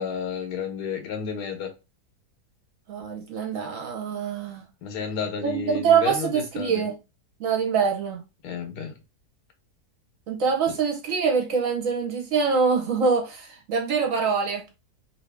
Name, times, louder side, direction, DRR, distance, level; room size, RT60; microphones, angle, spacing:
voice 1, 0.0-1.7 4.8-6.8 8.4-9.0 10.7-10.8, left 6 dB, 85° left, 1.4 m, -31 dB
voice 2, 2.9-4.6 5.4-7.0 7.4-8.2 10.3-14.6, right 6 dB, 60° right, 1.2 m, -24 dB
2.9 x 2.7 x 3.3 m
omnidirectional pair, 1.7 m